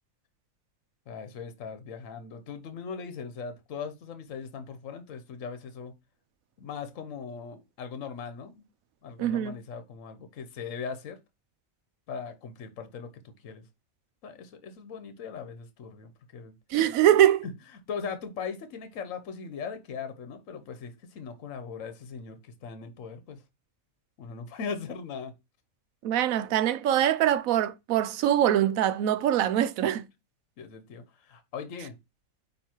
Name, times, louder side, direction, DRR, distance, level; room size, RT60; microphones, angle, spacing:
voice 1, 1.1-5.9 6.6-8.6 9.0-11.2 12.1-13.1 13.4-13.6 14.2-16.5 17.9-23.4 24.2-25.3 30.6-31.9, left 6 dB, 65° left, 1.3 m, -39 dB
voice 2, 9.2-9.5 16.7-17.4 26.0-30.0, right 11 dB, 75° right, 1.1 m, -23 dB
9.2 x 3.1 x 4.4 m
omnidirectional pair, 1.5 m